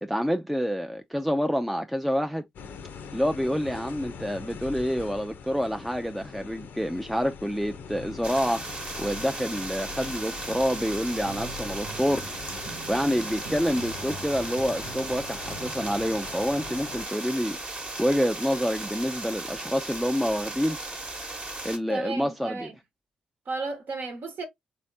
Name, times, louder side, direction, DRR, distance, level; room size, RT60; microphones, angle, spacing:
voice 1, 0.0-2.4 3.1-8.7 9.0-12.3 12.9-20.8 21.6-22.7, equal, ahead, 0.4 m, -27 dB
sound 1, 2.6-17.1, left 6 dB, 65° left, 0.6 m, -42 dB
sound 2, 8.2-21.8, right 2 dB, 35° right, 1.1 m, -36 dB
sound 3, 10.6-15.7, right 5 dB, 80° right, 0.6 m, -44 dB
voice 2, 21.9-22.7 23.5-24.5, right 3 dB, 60° right, 1.0 m, -33 dB
3.4 x 3.2 x 2.6 m
hypercardioid pair, 40°, 4 cm